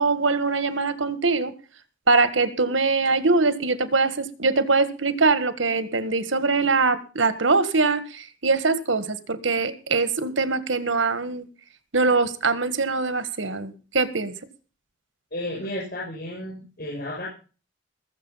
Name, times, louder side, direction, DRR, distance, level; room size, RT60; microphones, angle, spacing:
voice 1, 0.0-1.5 2.1-11.5 11.9-14.3, right 3 dB, 90° right, 12 dB, 1.6 m, -22 dB
voice 2, 15.3-17.3, left 1 dB, 55° left, -5 dB, 7.1 m, -32 dB
20.0 x 7.8 x 5.7 m, 0.36 s
head